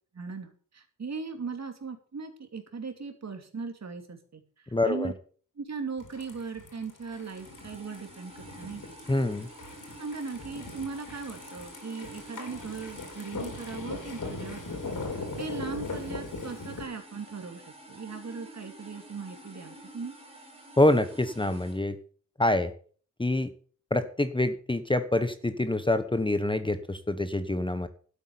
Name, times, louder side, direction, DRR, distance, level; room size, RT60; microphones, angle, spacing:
voice 1, 0.1-4.4 4.8-5.1 5.6-8.8 10.0-17.6 17.9-20.1, right 5 dB, 55° right, 5 dB, 2.8 m, -38 dB
voice 2, 4.7-5.1 9.1-9.5 20.8-22.0 22.4-22.7 23.2-23.5 23.9-27.9, left 1 dB, 15° left, 11 dB, 1.1 m, -26 dB
sound 1, 6.0-16.8, left 3 dB, 70° left, 4.7 m, -40 dB
sound 2, 7.1-21.8, right 1 dB, 15° right, 4.7 m, -49 dB
12.5 x 8.4 x 7.0 m, 0.44 s
wide cardioid pair, 100°, 32 cm